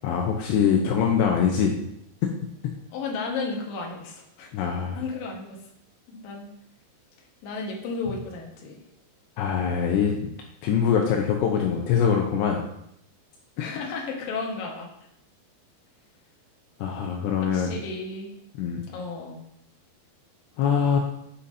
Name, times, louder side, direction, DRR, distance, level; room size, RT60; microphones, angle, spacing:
voice 1, 0.0-1.8 4.5-5.0 9.4-10.3 10.6-12.6 13.6-13.7 16.8-17.7 18.6-18.8 20.6-21.0, left 7 dB, 80° left, 1 dB, 2.9 m, -23 dB
voice 2, 2.9-4.5 4.9-5.6 6.1-6.5 7.4-8.8 13.6-14.9 17.5-18.3 18.9-19.4, left 4 dB, 60° left, -1 dB, 2.8 m, -33 dB
15.0 x 5.6 x 2.8 m, 0.77 s
omnidirectional pair, 5.1 m